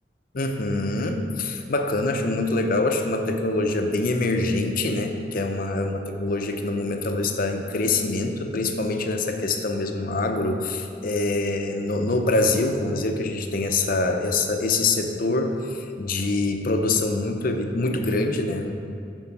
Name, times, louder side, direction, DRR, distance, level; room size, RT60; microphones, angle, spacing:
voice 1, 0.3-18.7, left 2 dB, 55° left, 5 dB, 0.7 m, -25 dB
9.7 x 4.5 x 5.9 m, 2.6 s
head